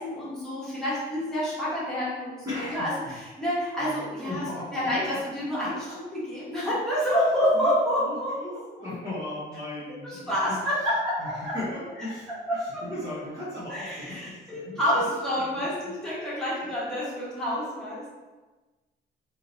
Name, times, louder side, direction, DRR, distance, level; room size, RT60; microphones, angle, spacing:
voice 1, 0.0-4.4 4.7-5.9 6.1-8.4 8.8-8.9 10.0-11.5 12.0-12.9 13.7-18.1, equal, 5° left, -10 dB, 1.3 m, -28 dB
voice 2, 2.4-3.1 3.8-3.9 4.3-4.8 7.5-10.7 11.2-12.2 12.8-15.9 16.7-16.9, left 1 dB, 20° right, -10 dB, 1.0 m, -37 dB
3.6 x 2.9 x 4.0 m, 1.2 s
cardioid pair, 175°, 18 cm